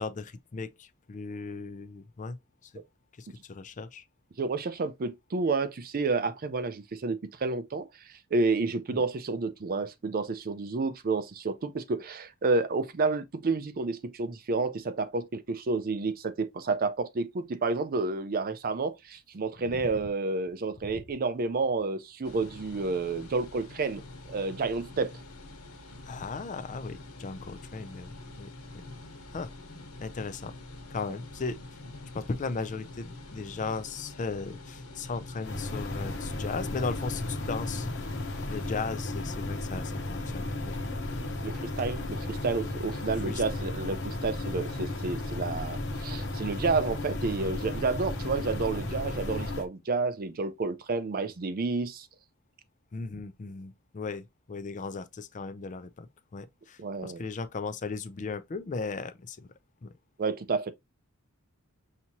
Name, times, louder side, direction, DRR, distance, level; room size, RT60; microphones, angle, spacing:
voice 1, 0.0-2.4 2.6-2.7 3.2-4.0 8.9-9.0 19.7-19.9 26.0-28.5 29.3-29.5 30.0-30.5 30.9-31.8 32.1-37.9 38.5-40.8 43.2-43.7 52.9-56.1 56.3-59.5 59.8-59.9, left 4 dB, 35° left, 0.4 m, -37 dB
voice 2, 4.4-7.9 8.3-24.0 24.3-25.1 41.2-52.1 56.8-57.2 60.2-60.7, right 3 dB, 40° right, 0.5 m, -30 dB
sound 1, 22.2-38.8, left 2 dB, 80° left, 1.2 m, -46 dB
sound 2, 35.4-49.6, left 2 dB, 55° left, 0.9 m, -34 dB
5.8 x 2.8 x 2.8 m
head